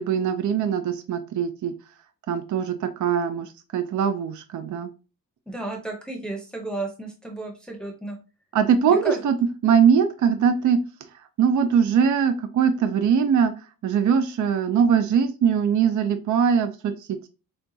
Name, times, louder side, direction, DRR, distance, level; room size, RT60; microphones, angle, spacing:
voice 1, 0.0-1.7 2.3-4.9 8.5-9.4 9.6-10.8 11.4-13.5 13.8-17.3, right 7 dB, 60° right, 8 dB, 0.5 m, -21 dB
voice 2, 5.5-8.2 8.9-9.2, right 2 dB, 5° left, 1 dB, 0.7 m, -32 dB
6.7 x 2.3 x 2.6 m, 0.32 s
wide cardioid pair, 160°, 34 cm